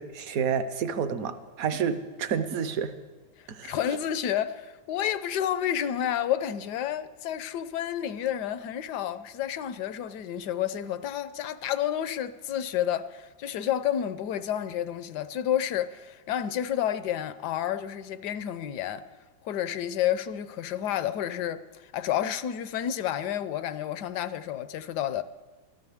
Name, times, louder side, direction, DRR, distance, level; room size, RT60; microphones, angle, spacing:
voice 1, 0.0-2.9 3.5-3.7, right 7 dB, 60° right, 1.0 m, -29 dB
voice 2, 3.6-19.0 19.4-25.2, left 10 dB, 70° left, 1.1 m, -30 dB
22.5 x 14.0 x 3.5 m
omnidirectional pair, 2.0 m